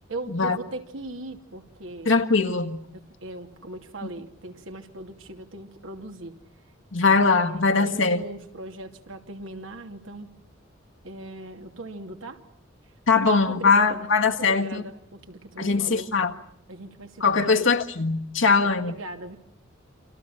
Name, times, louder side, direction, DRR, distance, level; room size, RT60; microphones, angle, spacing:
voice 1, 0.0-2.1 2.9-6.3 7.3-10.3 11.0-12.4 13.1-16.1 16.7-17.7 18.5-19.4, right 2 dB, 90° right, 4 dB, 2.6 m, -39 dB
voice 2, 2.0-2.8 6.9-8.2 13.1-14.8 15.6-16.3 17.2-18.9, left 4 dB, 75° left, 5 dB, 1.7 m, -21 dB
29.0 x 25.5 x 5.8 m, 0.69 s
head